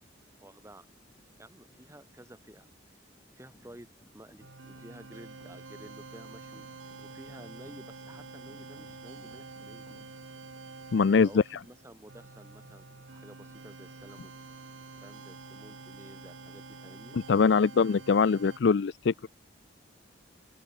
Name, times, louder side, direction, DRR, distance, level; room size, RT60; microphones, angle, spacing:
voice 1, 0.4-0.9 1.4-2.7 3.4-3.9 4.1-6.7 7.0-9.9 11.1-14.4 15.0-17.2, right 1 dB, 15° right, 2.5 m, -52 dB
sound 1, 1.1-10.5, equal, 25° left, 7.0 m, -62 dB
sound 2, 4.4-18.6, right 3 dB, 85° right, 1.3 m, -48 dB
voice 2, 10.9-11.4 17.1-19.3, left 5 dB, 65° left, 0.4 m, -23 dB
open air
head